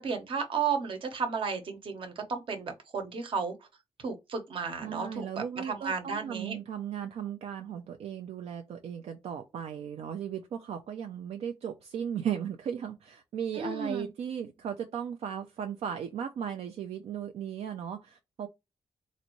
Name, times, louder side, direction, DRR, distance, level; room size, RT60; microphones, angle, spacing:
voice 1, 0.0-3.5 4.0-6.6 13.5-14.1, right 5 dB, 55° right, 1.0 m, -33 dB
voice 2, 4.8-18.5, right 8 dB, 75° right, 0.5 m, -36 dB
4.0 x 2.6 x 3.1 m
wide cardioid pair, 140°, 11 cm